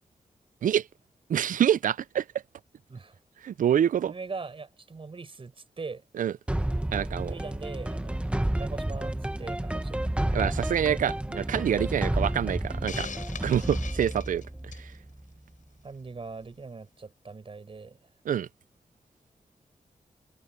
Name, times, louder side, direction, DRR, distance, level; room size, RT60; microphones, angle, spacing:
voice 1, 1.3-2.2 3.4-4.1 6.2-6.3 6.9-7.3 10.3-13.1 13.4-14.4 14.8-14.9 18.3-18.5, right 9 dB, 85° right, 0.4 m, -26 dB
voice 2, 4.1-6.0 7.1-8.2 8.6-10.1 13.4-13.7 15.8-18.0, right 4 dB, 45° right, 5.0 m, -41 dB
sound 1, 6.5-15.3, right 1 dB, 10° right, 1.2 m, -31 dB
Hiss, 12.9-14.9, left 6 dB, 75° left, 7.9 m, -40 dB
wide cardioid pair, 130°, 13 cm